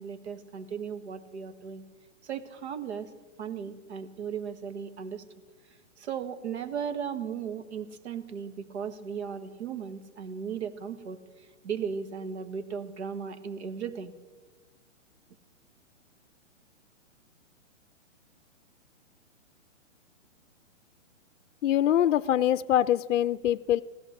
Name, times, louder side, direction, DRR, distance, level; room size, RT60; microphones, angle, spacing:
voice 1, 0.0-1.8 2.2-3.1 3.4-5.2 6.0-14.1, right 7 dB, 60° right, 10 dB, 1.5 m, -36 dB
voice 2, 21.6-23.8, left 11 dB, 70° left, 15 dB, 0.5 m, -24 dB
16.0 x 13.0 x 6.5 m, 1.3 s
hypercardioid pair, 170°, 38 cm